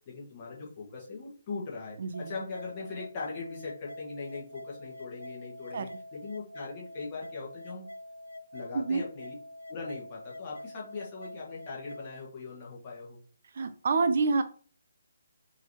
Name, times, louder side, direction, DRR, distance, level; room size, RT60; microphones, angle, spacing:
voice 1, 0.1-7.9 8.5-9.3 9.7-13.2, left 4 dB, 30° left, -4 dB, 1.6 m, -40 dB
voice 2, 2.0-2.4 5.7-5.9 8.7-9.0 13.5-14.4, right 4 dB, 45° right, 10 dB, 0.4 m, -27 dB
sound 1, 2.1-12.1, left 1 dB, 80° left, 0.3 m, -46 dB
4.7 x 3.0 x 3.0 m, 0.43 s
figure-of-eight pair, 140°, 0 cm